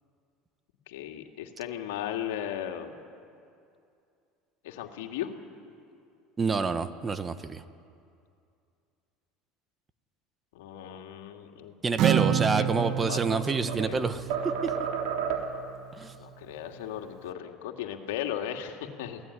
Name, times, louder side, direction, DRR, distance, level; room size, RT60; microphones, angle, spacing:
voice 1, 0.9-2.9 4.6-5.3 10.5-11.7 12.1-12.3 12.6-13.4 13.8-14.1 16.2-19.2, left 10 dB, 85° left, 3 dB, 2.5 m, -36 dB
voice 2, 6.4-7.6 11.8-14.5 15.9-16.1, right 4 dB, 25° right, 11 dB, 1.4 m, -28 dB
Acoustic guitar, 12.0-15.6, right 9 dB, 55° right, 1.3 m, -29 dB
sound 1, 12.6-14.0 14.3-15.7, right 7 dB, 75° right, 3.8 m, -32 dB
29.5 x 18.0 x 10.0 m, 2.5 s
supercardioid pair, 100°, 0 cm